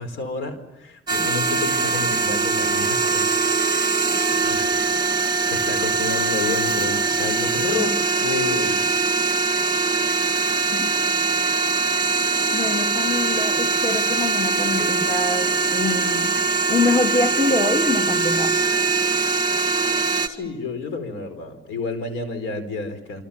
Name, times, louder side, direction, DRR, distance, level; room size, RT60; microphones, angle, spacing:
voice 1, 0.0-4.0 4.4-5.1 5.4-8.8 20.2-23.2, left 4 dB, 85° left, 10 dB, 4.7 m, -30 dB
sound 1, 1.1-20.3, right 4 dB, 20° right, 2.3 m, -22 dB
voice 2, 12.5-16.3 16.7-18.6, left 3 dB, 15° left, 6 dB, 2.1 m, -25 dB
30.0 x 25.5 x 7.2 m, 0.93 s
cardioid pair, 90°, 20 cm